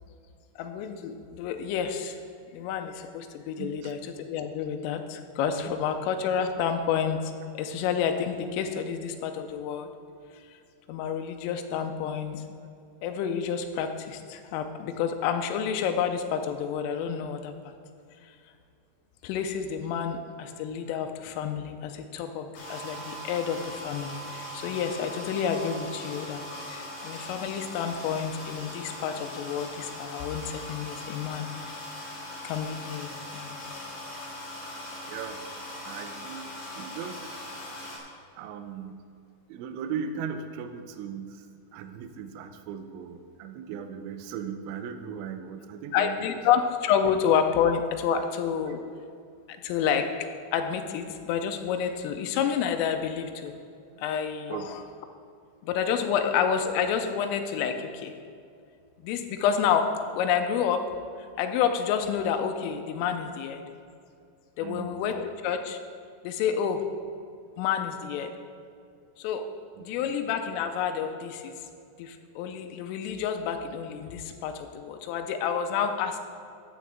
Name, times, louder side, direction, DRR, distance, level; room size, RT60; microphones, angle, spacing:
voice 1, 0.6-2.2 2.5-9.9 10.9-12.4 13.0-17.5 19.2-26.4 26.7-31.5 32.4-33.6 45.9-48.8 49.5-50.1 50.5-53.5 54.0-54.8 55.6-58.1 59.0-59.9 60.1-60.9 61.4-63.6 64.6-65.8 66.2-66.8 67.6-68.3 69.2-69.5 69.8-71.5 72.0-76.2, left 7 dB, 90° left, 6 dB, 3.3 m, -29 dB
voice 2, 3.6-3.9 5.7-5.8 35.0-35.4 35.8-36.5 36.8-37.5 37.9-38.1 38.4-39.0 39.5-41.5 41.7-46.4 54.5-54.7 56.1-56.2 64.6-65.1 69.8-70.1, right 7 dB, 80° right, 7 dB, 2.8 m, -38 dB
Hydro Pump, 22.5-38.0, left 1 dB, 45° left, 2.2 m, -40 dB
12.0 x 9.7 x 3.5 m, 2.4 s
omnidirectional pair, 5.8 m